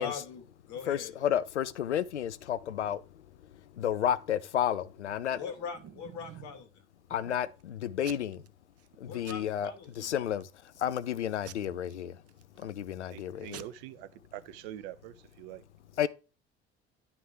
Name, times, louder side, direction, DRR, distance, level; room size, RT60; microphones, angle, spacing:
voice 1, 0.0-1.1 5.3-6.8 9.0-10.2, left 6 dB, 55° left, 2.8 m, -41 dB
voice 2, 0.9-3.0 3.8-5.4 7.1-8.4 9.0-9.7 10.0-10.4 10.8-12.1 12.6-13.6 16.0-16.1, left 10 dB, 90° left, 0.6 m, -31 dB
Packing tape duct tape / Tearing, 5.3-6.6 7.1-7.6 8.0-8.5 8.8-9.0 9.2-9.9 10.4-10.8 11.4-12.7 13.2-13.3 13.5-13.6, right 12 dB, 45° right, 0.9 m, -49 dB
voice 3, 13.1-15.6, right 12 dB, 70° right, 0.9 m, -45 dB
11.0 x 5.9 x 3.4 m
hypercardioid pair, 60°, 34 cm